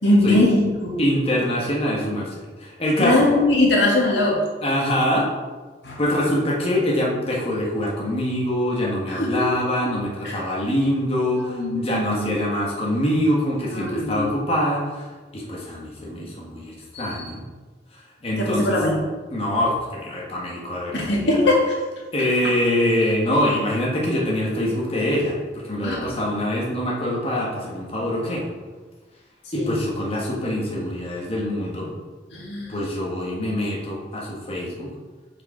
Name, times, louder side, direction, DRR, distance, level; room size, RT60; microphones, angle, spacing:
voice 1, 0.0-1.0 3.0-4.4 5.8-6.0 9.1-9.4 9.8-9.9 10.2-10.4 11.4-12.3 13.7-14.3 16.9-17.3 18.3-19.0 20.9-21.7 23.3-23.4 25.8-26.1 29.5-29.7 32.3-32.8, left 1 dB, 90° left, -3 dB, 2.0 m, -21 dB
voice 2, 1.0-2.3 2.6-3.3 4.6-5.3 6.0-15.1 15.3-17.4 18.2-18.8 19.3-21.4 22.1-28.4 29.5-31.9 32.7-34.9, left 1 dB, 35° left, -4 dB, 1.5 m, -24 dB
7.3 x 5.1 x 4.9 m, 1.3 s
head